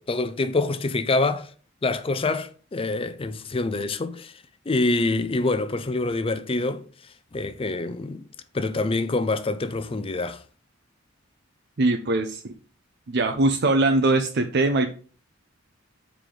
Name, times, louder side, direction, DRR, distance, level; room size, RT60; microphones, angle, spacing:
voice 1, 0.1-1.5 1.8-8.3 8.5-10.4, left 2 dB, 30° left, 0.5 m, -26 dB
voice 2, 11.8-12.5 13.1-14.9, right 2 dB, 55° right, 0.6 m, -21 dB
6.6 x 4.8 x 3.7 m
head